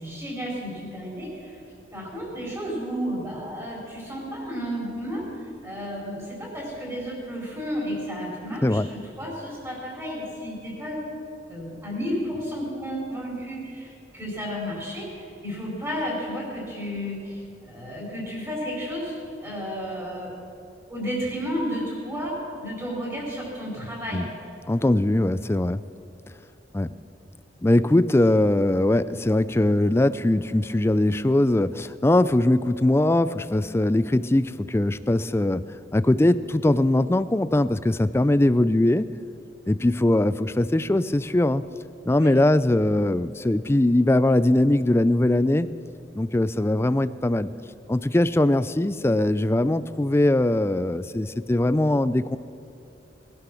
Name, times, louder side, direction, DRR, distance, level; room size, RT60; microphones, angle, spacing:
voice 1, 0.0-1.6 1.9-11.0 11.5-20.3 20.9-24.3 42.1-42.3, equal, 15° right, -3 dB, 4.5 m, -32 dB
voice 2, 24.7-25.8 26.7-26.9 27.6-35.6 35.9-39.1 39.7-41.6 42.1-45.7 46.2-47.5 47.9-52.4, left 1 dB, 15° left, 15 dB, 0.4 m, -21 dB
20.0 x 11.5 x 6.2 m, 2.7 s
head